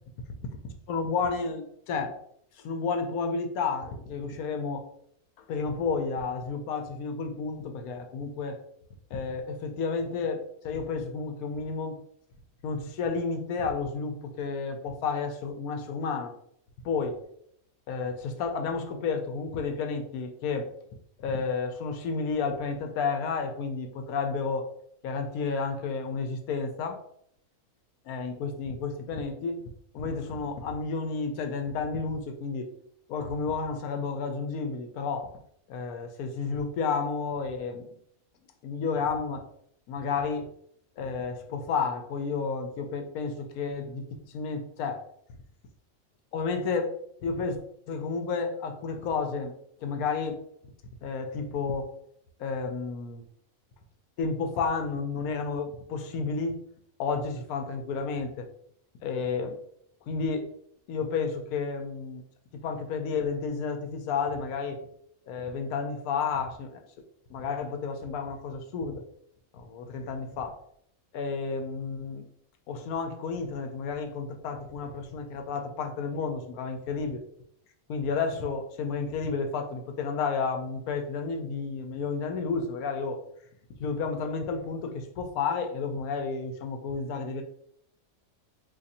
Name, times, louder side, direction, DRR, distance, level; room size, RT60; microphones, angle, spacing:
voice 1, 0.6-2.2 2.6-4.8 5.5-8.6 9.1-12.0 12.6-16.3 16.8-17.1 17.9-20.7 21.2-24.7 25.0-27.0 28.1-29.6 29.9-32.7 33.1-35.3 35.7-37.9 38.6-39.4 39.9-40.5 41.0-45.0 46.3-46.9 47.2-47.6 47.9-49.5 49.8-50.4 51.0-51.9 52.4-53.2 54.2-56.6 57.0-58.5 59.0-59.6 60.1-60.4 60.9-62.2 62.6-64.8 65.3-66.8 67.3-69.0 69.5-70.5 71.1-72.2 72.7-77.2 77.9-83.2 83.8-87.4, left 5 dB, 85° left, 5 dB, 1.1 m, -31 dB
2.8 x 2.5 x 4.0 m, 0.68 s
omnidirectional pair, 1.5 m